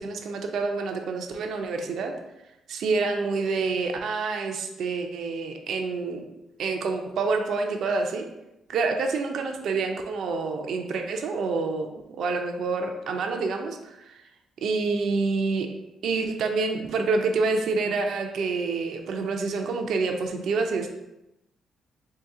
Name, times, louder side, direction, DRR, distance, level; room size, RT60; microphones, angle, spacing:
voice 1, 0.0-2.1 2.7-6.2 6.6-8.2 8.7-14.1 14.6-15.7 16.0-20.9, right 4 dB, 70° right, 4 dB, 0.4 m, -27 dB
3.1 x 2.8 x 3.6 m, 0.91 s
cardioid pair, 90°, 0 cm